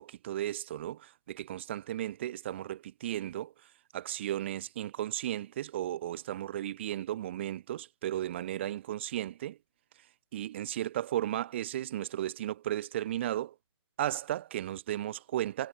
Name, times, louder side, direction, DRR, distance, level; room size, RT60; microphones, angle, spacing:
voice 1, 0.0-9.6 10.3-13.5 14.0-15.7, right 12 dB, 25° right, 2.2 m, -35 dB
hypercardioid pair, 165°, 14 cm